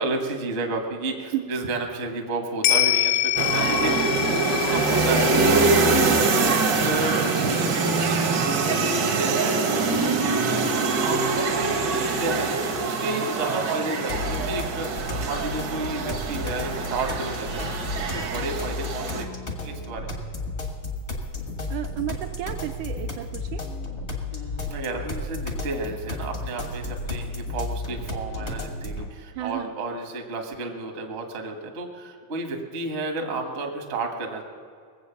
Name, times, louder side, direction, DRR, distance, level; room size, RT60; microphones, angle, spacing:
voice 1, 0.0-20.1 24.3-34.4, right 3 dB, 45° right, 3 dB, 0.8 m, -32 dB
sound 1, 2.6-11.2 11.6-11.7, left 13 dB, 80° left, 1.9 m, -28 dB
sound 2, 3.4-19.2, right 4 dB, 60° right, 1.1 m, -24 dB
sound 3, 14.1-29.1, left 2 dB, 50° left, 0.7 m, -33 dB
voice 2, 21.7-23.6 29.4-29.7, right 12 dB, 75° right, 6 dB, 1.9 m, -32 dB
20.5 x 7.9 x 6.9 m, 2.1 s
omnidirectional pair, 3.8 m